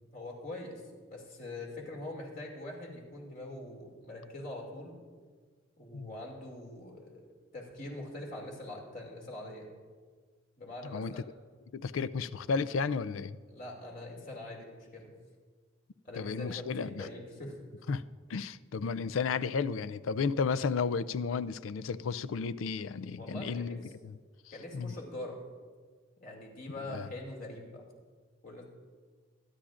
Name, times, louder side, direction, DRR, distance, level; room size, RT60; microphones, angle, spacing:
voice 1, 0.1-0.8 1.1-5.0 5.8-7.3 7.5-9.7 10.6-11.2 13.5-15.1 16.0-17.6 23.2-23.8 24.5-25.4 26.2-27.8 28.4-28.7, left 1 dB, 45° left, -1 dB, 2.5 m, -43 dB
voice 2, 10.8-11.2 11.7-13.4 16.2-17.1 17.9-18.0 18.3-24.2 24.7-24.9 26.9-27.1, left 5 dB, 75° left, 16 dB, 0.4 m, -33 dB
23.0 x 10.0 x 2.5 m, 1.5 s
head